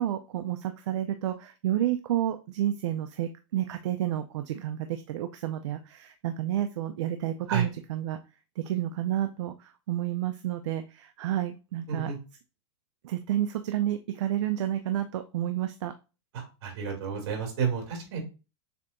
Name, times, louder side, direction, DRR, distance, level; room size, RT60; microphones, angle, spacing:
voice 1, 0.0-8.2 8.6-12.1 13.0-15.9, right 12 dB, 80° right, 8 dB, 0.5 m, -30 dB
voice 2, 16.3-18.2, right 6 dB, 60° right, 0 dB, 2.5 m, -30 dB
6.9 x 2.9 x 2.6 m, 0.31 s
supercardioid pair, 160°, 15 cm